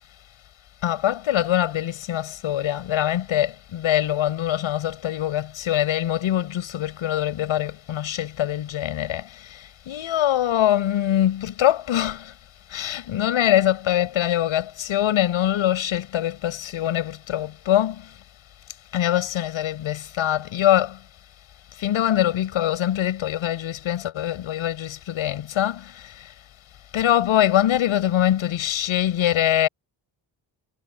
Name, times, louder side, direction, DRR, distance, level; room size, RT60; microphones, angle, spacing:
voice 1, 0.8-9.2 9.9-12.3 12.7-18.0 18.9-21.0 21.8-25.9 26.9-29.7, left 12 dB, 85° left, 6.3 m, -23 dB
cardioid pair, 80°, 47 cm